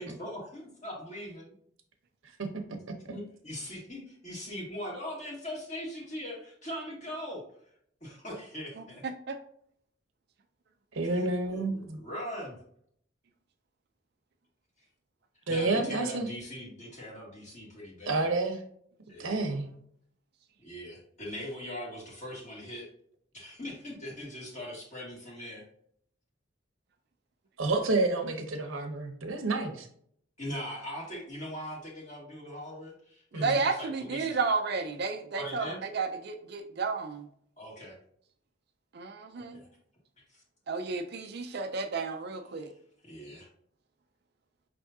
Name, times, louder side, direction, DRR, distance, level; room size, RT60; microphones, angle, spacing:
voice 1, 0.0-1.5 3.1-7.4 8.0-9.0 11.2-12.5 15.5-18.3 19.1-19.4 20.6-22.9 23.3-25.6 30.4-34.4 35.3-35.8 37.6-38.0 39.5-39.7 40.3-40.4 43.0-43.5, equal, 35° left, -3 dB, 1.7 m, -41 dB
voice 2, 10.9-12.0 15.5-16.3 18.1-18.6 19.2-19.7 27.6-29.9 33.3-33.6, right 2 dB, 75° right, 4 dB, 0.9 m, -29 dB
voice 3, 33.4-37.2 38.9-39.6 40.7-42.7, right 4 dB, 50° right, 5 dB, 0.5 m, -32 dB
5.5 x 3.5 x 2.7 m, 0.65 s
head